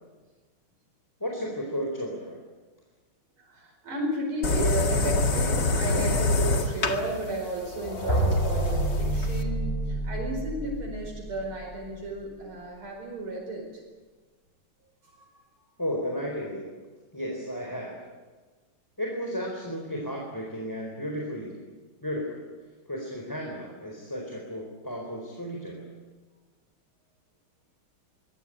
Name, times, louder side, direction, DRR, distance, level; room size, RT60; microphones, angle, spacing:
voice 1, 1.2-2.4 15.8-16.8 17.1-18.0 19.0-21.6 22.0-22.4 22.9-25.9, equal, 10° left, 0 dB, 4.1 m, -33 dB
voice 2, 3.4-13.8 15.0-15.3, right 1 dB, 90° right, -2 dB, 5.8 m, -33 dB
sound 1, 4.4-9.4, left 3 dB, 55° left, 2.6 m, -26 dB
sound 2, 7.7-11.7, right 1 dB, 25° left, 6.3 m, -28 dB
25.0 x 21.0 x 9.1 m, 1.4 s
omnidirectional pair, 2.3 m